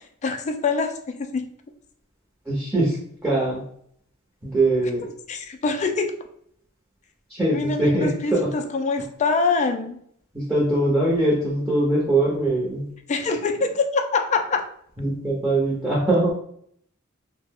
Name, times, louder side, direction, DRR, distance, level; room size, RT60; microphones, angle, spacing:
voice 1, 0.0-1.5 5.3-6.1 7.5-10.0 13.1-14.6, left 4 dB, 35° left, 6 dB, 0.3 m, -24 dB
voice 2, 2.5-3.0 3.2-3.6 4.4-5.1 7.3-8.5 10.3-12.9 15.0-16.3, right 1 dB, 10° right, -7 dB, 0.7 m, -22 dB
2.4 x 2.1 x 3.4 m, 0.66 s
head